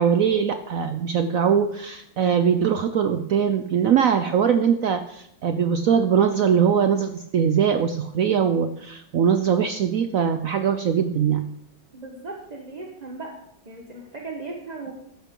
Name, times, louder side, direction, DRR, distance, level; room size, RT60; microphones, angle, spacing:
voice 1, 0.0-11.5, right 7 dB, 80° right, 9 dB, 0.7 m, -21 dB
voice 2, 11.9-13.4 13.6-14.9, right 3 dB, 25° right, 0 dB, 1.1 m, -37 dB
14.0 x 11.5 x 3.8 m, 0.77 s
omnidirectional pair, 2.2 m